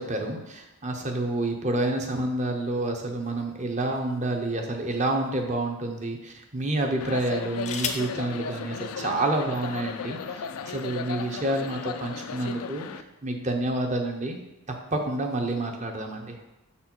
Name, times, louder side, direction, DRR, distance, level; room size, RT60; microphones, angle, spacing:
voice 1, 0.0-12.9 13.2-14.4 14.9-16.4, right 2 dB, 35° right, 3 dB, 0.7 m, -28 dB
sound 1, 3.5-4.6 5.4-5.5 7.1-8.2 9.3-9.4 9.8-10.1, left 6 dB, 35° left, 0.5 m, -36 dB
sound 2, 7.0-13.0, left 6 dB, 90° left, 0.4 m, -35 dB
6.3 x 4.2 x 4.4 m, 0.94 s
head